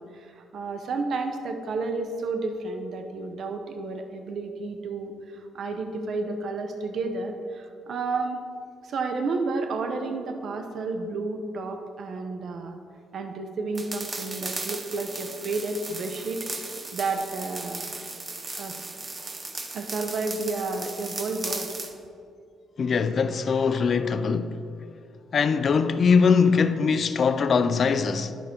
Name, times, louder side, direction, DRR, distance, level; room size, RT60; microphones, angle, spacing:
voice 1, 0.0-8.4 8.8-12.8 13.1-18.2 18.5-18.8 19.7-21.8, right 3 dB, 60° right, 0.8 m, -31 dB
sound 1, 13.7-21.9, right 3 dB, 30° right, 0.8 m, -36 dB
voice 2, 22.8-24.6 25.3-28.3, left 5 dB, 50° left, 0.4 m, -22 dB
11.0 x 4.9 x 4.4 m
cardioid pair, 90°, 0 cm